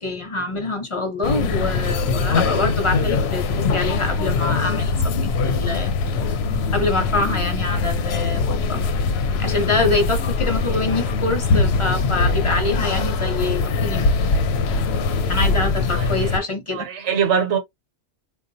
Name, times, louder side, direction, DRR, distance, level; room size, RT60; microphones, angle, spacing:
voice 1, 0.0-5.9 6.7-8.8 9.4-14.1 15.3-16.9, left 3 dB, 30° left, 0.8 m, -25 dB
sound 1, 1.2-16.4, left 4 dB, 70° left, 0.8 m, -22 dB
voice 2, 15.9-16.4 16.7-17.6, right 7 dB, 80° right, 1.1 m, -23 dB
3.7 x 2.3 x 2.6 m
omnidirectional pair, 1.2 m